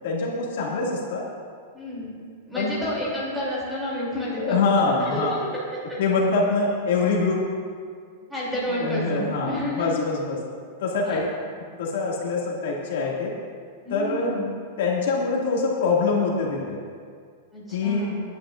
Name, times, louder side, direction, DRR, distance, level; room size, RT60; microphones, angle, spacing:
voice 1, 0.0-1.3 2.6-2.7 4.3-5.4 6.0-7.5 8.7-10.4 10.8-11.3 11.8-13.4 13.9-14.3 14.8-16.8 17.7-18.1, left 4 dB, 60° left, -3 dB, 2.2 m, -24 dB
voice 2, 1.7-2.1 2.5-5.5 5.9-6.0 8.3-9.9 11.0-11.2 13.8-14.5 17.5-18.2, equal, 5° right, -8 dB, 3.0 m, -30 dB
23.0 x 10.0 x 2.6 m, 2.1 s
supercardioid pair, 175°, 0 cm